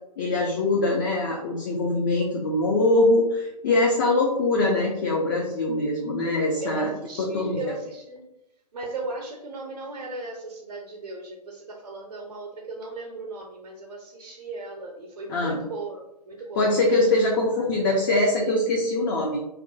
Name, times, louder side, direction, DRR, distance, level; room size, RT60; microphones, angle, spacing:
voice 1, 0.2-6.9 7.3-7.6 15.3-15.6 16.6-19.4, left 2 dB, 30° left, -2 dB, 0.4 m, -23 dB
voice 2, 6.6-8.3 8.7-16.7 17.0-17.6, right 2 dB, 60° right, 1 dB, 0.5 m, -37 dB
2.5 x 2.4 x 2.3 m, 0.86 s
figure-of-eight pair, 125°, 21 cm